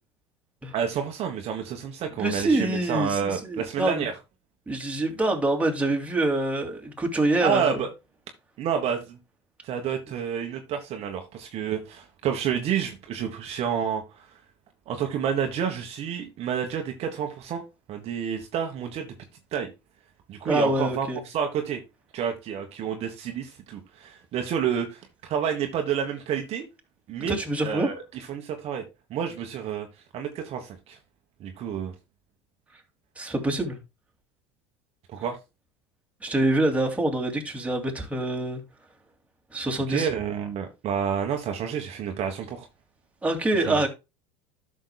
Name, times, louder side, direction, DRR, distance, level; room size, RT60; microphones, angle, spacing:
voice 1, 0.7-4.1 7.4-7.9 8.6-9.2 9.6-14.0 14.9-17.6 17.9-19.1 19.5-19.7 20.3-21.1 21.3-21.8 22.1-26.6 27.1-27.4 27.6-28.0 28.3-28.8 29.1-29.9 30.1-31.0 31.4-31.9 35.1-35.4 39.9-42.6 43.6-43.8, right 8 dB, 45° right, 1.3 m, -29 dB
voice 2, 2.2-4.1 4.7-7.8 20.4-21.2 27.3-27.9 33.2-33.8 36.2-38.6 39.5-40.1 43.2-43.9, right 2 dB, 10° right, 2.5 m, -25 dB
13.0 x 6.3 x 2.3 m
hypercardioid pair, 85°, 14 cm